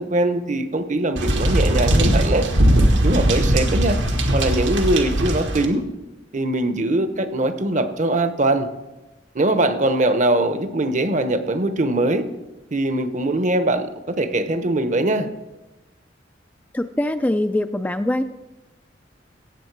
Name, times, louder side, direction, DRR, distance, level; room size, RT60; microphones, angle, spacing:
voice 1, 0.0-2.4 3.0-4.0 4.3-5.8 6.3-8.7 9.3-12.3 12.7-15.3, right 1 dB, 40° right, 10 dB, 0.8 m, -21 dB
sound 1, 1.2-5.6, right 1 dB, 85° right, 1.6 m, -19 dB
voice 2, 16.7-18.2, left 1 dB, 10° left, 8 dB, 0.3 m, -22 dB
16.0 x 8.0 x 4.6 m, 1.1 s
head